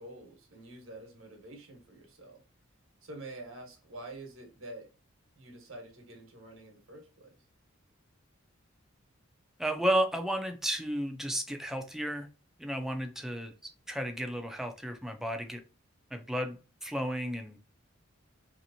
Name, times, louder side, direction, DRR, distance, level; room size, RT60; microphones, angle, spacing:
voice 1, 0.0-2.4 3.0-4.9 5.3-7.3, right 2 dB, 75° right, 1.1 m, -47 dB
voice 2, 9.6-12.3 12.6-13.5 13.9-15.6 16.1-17.6, right 1 dB, ahead, 0.4 m, -33 dB
3.1 x 2.9 x 2.6 m
head